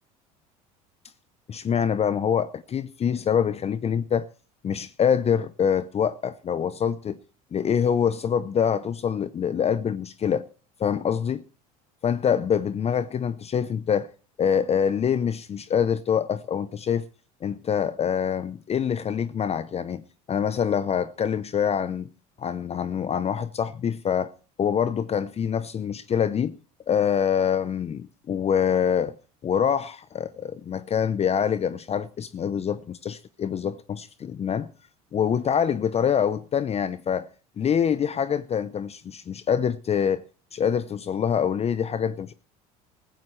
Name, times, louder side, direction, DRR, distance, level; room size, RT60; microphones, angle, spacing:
voice 1, 1.5-4.3 4.6-7.2 7.5-10.4 10.8-11.4 12.0-14.1 14.4-17.1 17.4-22.1 22.4-24.3 24.6-26.6 26.9-29.1 29.4-34.7 35.1-37.3 37.6-40.2 40.5-42.3, left 8 dB, 35° left, 0.7 m, -25 dB
16.0 x 15.0 x 3.2 m
supercardioid pair, 85°, 19 cm